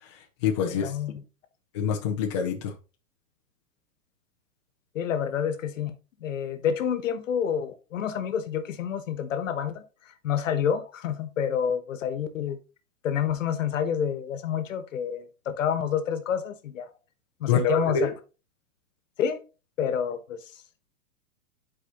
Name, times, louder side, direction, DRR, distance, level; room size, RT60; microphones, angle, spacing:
voice 1, 0.0-1.0 1.7-2.7 17.5-18.1, left 6 dB, 20° left, 0.6 m, -26 dB
voice 2, 0.6-1.2 4.9-5.9 6.2-12.6 13.0-16.9 17.4-18.1 19.2-19.4 19.8-20.4, left 8 dB, 60° left, 1.3 m, -28 dB
10.5 x 4.8 x 3.0 m
hypercardioid pair, 175°, 43 cm